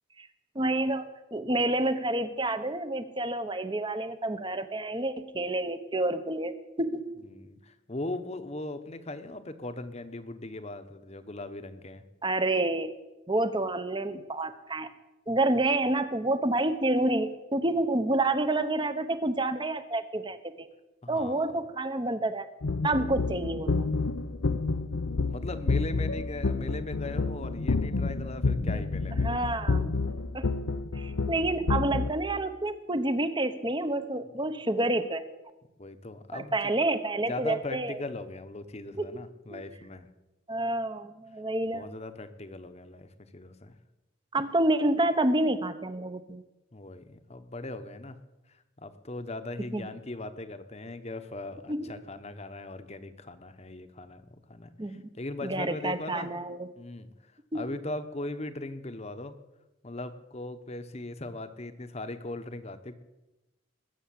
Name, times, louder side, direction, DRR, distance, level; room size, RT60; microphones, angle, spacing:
voice 1, 0.5-7.3 12.2-13.0 13.3-14.9 15.3-20.7 21.1-22.5 22.8-23.8 28.6-28.8 29.2-29.9 30.3-30.5 30.9-35.2 36.3-38.0 39.0-39.1 39.5-39.6 40.5-41.9 44.3-46.4 49.7-49.9 51.7-51.9 54.8-55.0 55.4-56.7 57.5-57.7, right 2 dB, 20° right, 11 dB, 0.9 m, -29 dB
voice 2, 7.2-12.0 21.0-21.5 25.3-29.5 35.8-36.6 37.3-40.1 41.7-43.7 46.7-48.2 48.8-54.2 54.5-56.3 56.8-57.1 57.5-59.4 59.8-63.0, left 2 dB, 30° left, 10 dB, 1.0 m, -39 dB
sound 1, 22.6-32.1, left 3 dB, 80° left, 0.8 m, -29 dB
20.5 x 7.1 x 8.7 m, 1.0 s
head